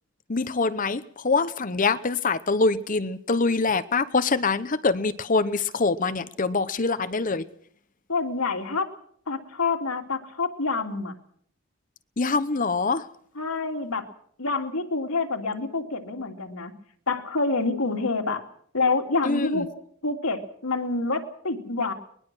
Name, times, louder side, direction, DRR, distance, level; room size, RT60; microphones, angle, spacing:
voice 1, 0.3-7.5 12.2-13.1 19.2-19.7, left 3 dB, 40° left, 0.9 m, -24 dB
voice 2, 8.1-8.9 9.3-11.1 13.4-14.1 14.4-16.7 17.1-18.4 18.7-19.7 20.0-21.9, left 3 dB, 90° left, 2.9 m, -27 dB
23.5 x 20.5 x 6.3 m
head